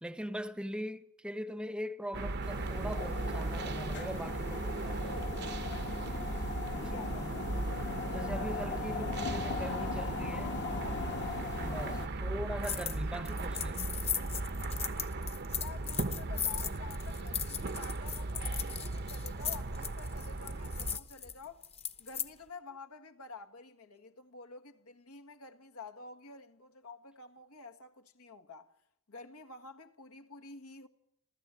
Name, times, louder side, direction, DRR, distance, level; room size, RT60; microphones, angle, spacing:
voice 1, 0.0-5.4 6.7-7.3 8.1-10.6 11.6-13.8, equal, 5° right, 0.8 m, -41 dB
sound 1, 2.1-21.0, right 2 dB, 50° right, 0.8 m, -37 dB
sound 2, 2.4-12.1, left 3 dB, 55° left, 1.3 m, -39 dB
voice 2, 6.9-7.5 15.4-21.7 22.0-28.7 29.1-30.9, left 4 dB, 80° left, 1.6 m, -50 dB
sound 3, 12.6-13.0 13.3-22.3, left 8 dB, 30° left, 1.0 m, -38 dB
30.0 x 13.5 x 8.3 m
head